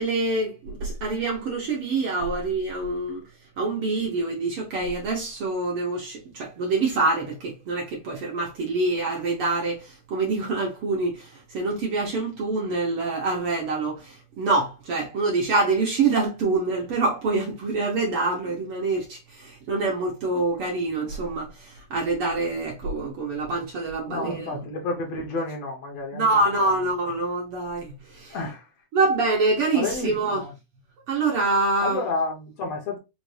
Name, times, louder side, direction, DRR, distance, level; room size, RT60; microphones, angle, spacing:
voice 1, 0.0-3.2 3.6-24.6 26.1-28.4 28.9-30.5 31.1-32.0, right 3 dB, 65° right, 1.5 m, -26 dB
voice 2, 24.1-26.7 28.3-28.7 29.7-30.5 31.8-33.0, left 3 dB, 65° left, 1.9 m, -31 dB
5.2 x 2.5 x 3.2 m
omnidirectional pair, 3.5 m